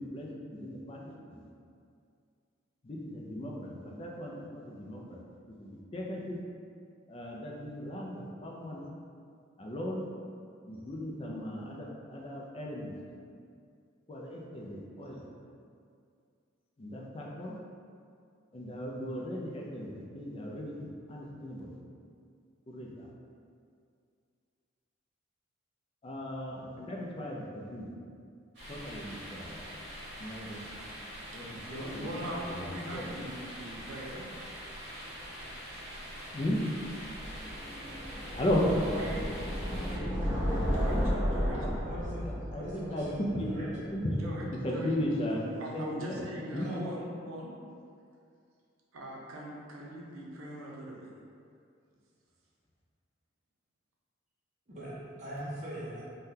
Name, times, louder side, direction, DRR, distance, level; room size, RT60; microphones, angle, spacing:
voice 1, 0.0-1.5 2.8-5.2 5.6-6.4 7.1-8.9 9.6-10.1 10.7-13.0 14.1-15.2 16.8-17.6 18.5-20.8 21.1-21.8 22.7-23.1 26.0-27.9 28.7-29.7 30.2-30.6 31.3-32.2 32.4-33.3 36.3-36.6 38.3-38.7 42.2-43.5 43.9-46.2 46.5-46.7, left 1 dB, 25° left, -2 dB, 0.3 m, -36 dB
sound 1, 28.5-40.0, equal, 55° right, 1.0 m, -44 dB
voice 2, 31.3-34.3 38.4-39.4 39.8-41.7 44.2-44.9 45.6-47.5 48.9-51.1, right 1 dB, 85° right, -3 dB, 0.6 m, -41 dB
sound 2, 37.0-44.0, equal, 10° right, 1.1 m, -33 dB
voice 3, 41.6-43.7 46.6-46.8 54.7-56.0, equal, 35° right, -9 dB, 0.6 m, -41 dB
3.6 x 2.2 x 2.7 m, 2.3 s
head